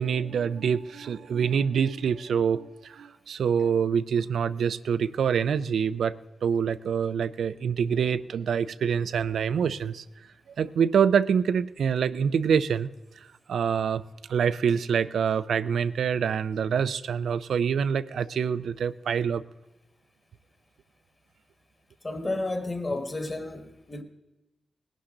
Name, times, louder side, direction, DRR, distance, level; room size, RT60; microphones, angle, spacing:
voice 1, 0.0-6.1 6.4-10.0 10.6-12.9 13.5-14.0 14.3-19.4, right 7 dB, 90° right, 0.5 m, -26 dB
voice 2, 22.0-24.0, left 2 dB, 25° left, 1.6 m, -31 dB
19.0 x 11.5 x 3.8 m
wide cardioid pair, 125°, 0 cm